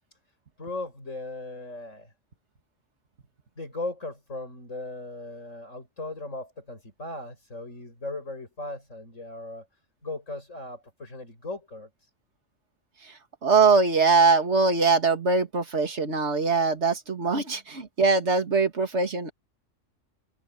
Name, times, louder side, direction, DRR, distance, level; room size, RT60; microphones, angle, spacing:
voice 1, 0.6-2.1 3.6-9.7 10.0-12.1 17.5-17.7, left 2 dB, 75° left, 8.5 m, -37 dB
voice 2, 13.4-19.3, right 4 dB, 60° right, 2.5 m, -22 dB
omnidirectional pair, 1.3 m